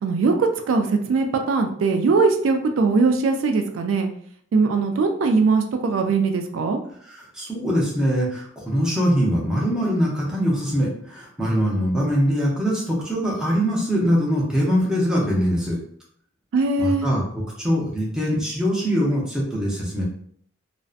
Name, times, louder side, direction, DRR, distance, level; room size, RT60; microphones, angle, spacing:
voice 1, 0.0-4.1 4.5-6.8 16.5-17.1, right 4 dB, 70° right, 5 dB, 0.3 m, -20 dB
voice 2, 7.1-15.8 16.8-17.2 17.6-20.0, equal, 5° right, -5 dB, 0.6 m, -22 dB
2.6 x 2.1 x 2.4 m, 0.62 s
head